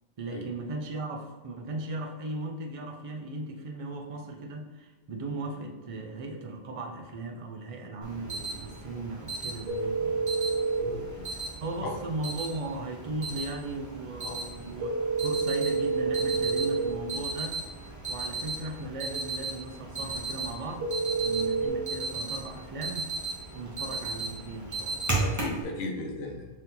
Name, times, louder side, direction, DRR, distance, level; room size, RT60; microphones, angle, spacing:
voice 1, 0.2-10.2 11.1-15.0 15.2-17.6 18.1-20.9 21.2-23.1 23.5-25.2, right 2 dB, 50° right, 3 dB, 0.4 m, -37 dB
Alarm, 8.0-25.6, right 3 dB, 15° right, 0.7 m, -36 dB
sound 1, 9.7-10.8 14.8-16.8 20.8-21.7, right 4 dB, 80° right, 1.1 m, -28 dB
voice 2, 10.8-11.3 11.8-11.9 14.2-14.3 25.2-26.5, left 2 dB, 60° left, 1 dB, 0.9 m, -36 dB
4.3 x 2.7 x 3.8 m, 1.3 s
omnidirectional pair, 1.3 m